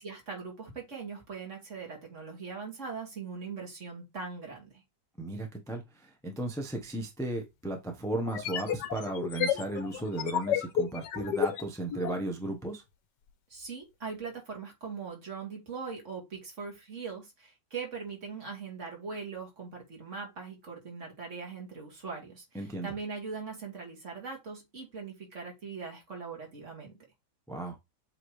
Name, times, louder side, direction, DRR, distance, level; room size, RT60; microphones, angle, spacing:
voice 1, 0.0-4.8 13.5-26.9, right 5 dB, 40° right, 2.5 m, -41 dB
voice 2, 5.2-12.8 22.5-22.9 27.5-27.8, right 2 dB, 5° left, 0.6 m, -35 dB
sound 1, 6.8-6.9 8.2-12.2, left 8 dB, 70° left, 1.4 m, -31 dB
7.6 x 3.8 x 3.2 m
omnidirectional pair, 2.1 m